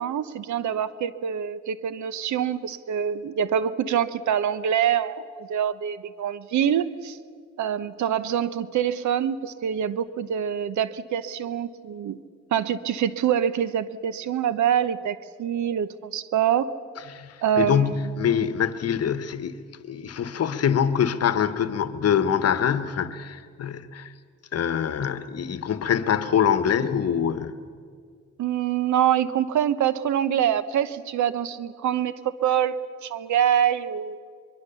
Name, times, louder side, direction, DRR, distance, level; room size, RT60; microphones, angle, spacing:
voice 1, 0.0-7.2 7.6-12.2 12.5-16.7 17.4-18.0 28.4-34.2, right 9 dB, 70° right, 15 dB, 1.0 m, -25 dB
voice 2, 17.1-19.6 19.9-24.1 24.5-27.6, left 8 dB, 55° left, 12 dB, 1.3 m, -24 dB
24.0 x 22.0 x 7.0 m, 2.1 s
cardioid pair, 90°, 30 cm